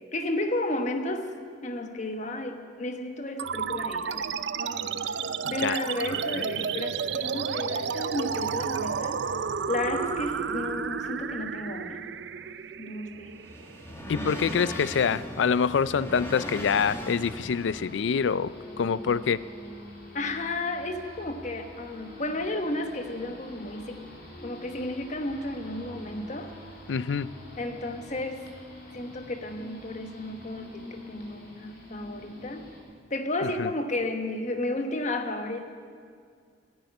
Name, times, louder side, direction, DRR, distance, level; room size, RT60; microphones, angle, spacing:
voice 1, 0.1-1.3 1.6-4.2 4.6-5.0 5.5-9.2 9.7-12.0 12.8-13.3 14.1-14.7 20.1-24.1 24.4-26.5 27.6-28.4 28.9-32.7 33.1-35.7, left 2 dB, 40° left, 6 dB, 1.2 m, -33 dB
sound 1, 3.4-14.3, right 6 dB, 70° right, 0.5 m, -32 dB
voice 2, 5.4-5.8 14.1-18.5 18.8-19.4 26.9-27.3 33.4-33.7, left 6 dB, 85° left, 17 dB, 0.4 m, -26 dB
sound 2, 12.7-17.9, equal, 15° left, 2.1 m, -39 dB
sound 3, 16.0-32.8, left 1 dB, 60° left, 3.5 m, -45 dB
13.5 x 9.3 x 9.5 m, 2.1 s
head